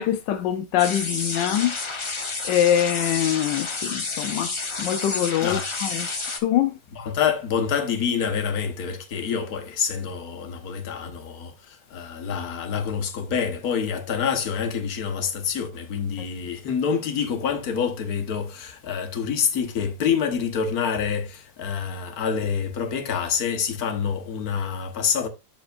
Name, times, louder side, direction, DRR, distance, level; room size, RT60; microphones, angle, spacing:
voice 1, 0.0-1.7 2.0-2.1 2.4-6.1 6.4-6.8, left 10 dB, 85° left, 1.3 m, -24 dB
sound 1, 0.8-6.4, left 3 dB, 30° left, 0.5 m, -30 dB
voice 2, 5.4-5.7 7.0-11.5 11.9-25.3, left 7 dB, 60° left, 1.6 m, -27 dB
11.5 x 5.1 x 2.5 m
omnidirectional pair, 1.9 m